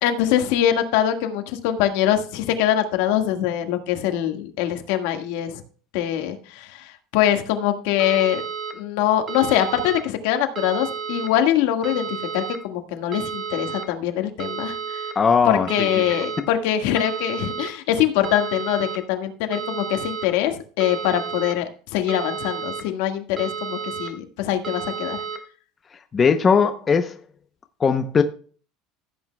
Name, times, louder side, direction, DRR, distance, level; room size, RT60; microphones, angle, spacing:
voice 1, 0.0-5.6 5.9-8.4 8.7-12.1 12.3-15.0 15.5-25.2, left 11 dB, 75° left, 1.6 m, -23 dB
sound 1, 8.0-8.7 9.3-10.0 10.6-11.3 11.8-12.6 13.1-13.8 14.4-15.1 15.7-16.4 17.0-17.7 18.2-19.0 19.5-20.3 20.8-21.5 22.1-22.8 23.4-24.1 24.6-25.4, right 6 dB, 25° right, 1.3 m, -31 dB
voice 2, 15.2-16.0 26.1-27.1 27.8-28.2, left 5 dB, 20° left, 0.6 m, -19 dB
15.0 x 8.5 x 2.2 m
cardioid pair, 155°, 0 cm